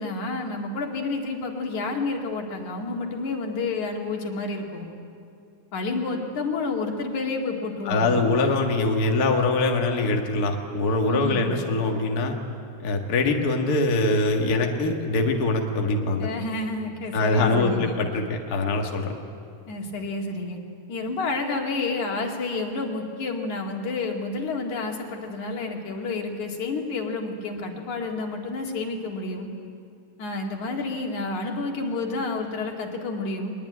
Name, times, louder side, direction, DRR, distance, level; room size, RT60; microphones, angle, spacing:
voice 1, 0.0-4.9 5.7-8.2 11.1-11.5 16.2-18.0 19.7-20.6 20.9-29.5 30.2-33.5, left 3 dB, 70° left, 1 dB, 3.6 m, -30 dB
voice 2, 7.8-12.3 12.8-16.3 17.1-19.1, left 2 dB, 35° left, 2 dB, 1.8 m, -23 dB
22.5 x 21.0 x 9.6 m, 2.5 s
omnidirectional pair, 3.6 m